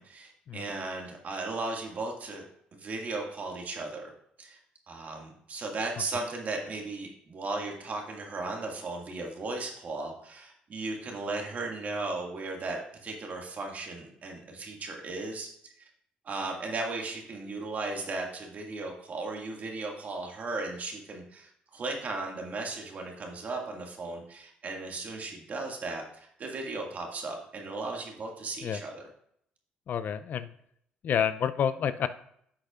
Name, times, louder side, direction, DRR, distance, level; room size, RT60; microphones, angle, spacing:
voice 1, 0.0-2.4 2.8-4.1 4.4-4.6 4.9-15.5 15.8-15.9 16.2-29.1, right 3 dB, 50° right, 1 dB, 2.0 m, -36 dB
voice 2, 29.9-30.5 31.0-32.1, left 8 dB, 60° left, 13 dB, 0.4 m, -29 dB
9.8 x 6.4 x 2.4 m, 0.70 s
supercardioid pair, 75°, 3 cm